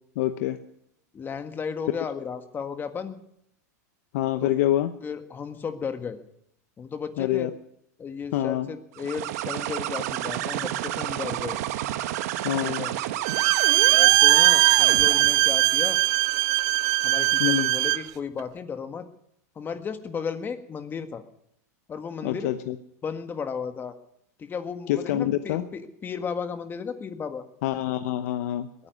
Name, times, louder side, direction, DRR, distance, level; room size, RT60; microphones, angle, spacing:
voice 1, 0.2-0.6 4.1-4.9 7.2-7.5 8.3-8.7 12.4-12.9 17.4-17.7 22.2-22.7 24.9-25.6 27.6-28.7, left 13 dB, 65° left, 10 dB, 0.9 m, -26 dB
voice 2, 1.1-3.2 4.4-4.5 5.0-6.2 6.8-7.5 8.0-11.6 12.6-12.9 13.9-16.0 17.0-19.1 19.6-21.2 21.9-22.5 23.0-24.0 24.4-27.4 28.8-28.9, left 6 dB, 20° left, 8 dB, 1.7 m, -34 dB
sound 1, 8.9-15.5, right 14 dB, 65° right, 1.2 m, -30 dB
Bowed string instrument, 13.2-18.1, right 19 dB, 40° right, 0.5 m, -20 dB
21.0 x 9.7 x 6.4 m, 0.75 s
supercardioid pair, 125°, 9 cm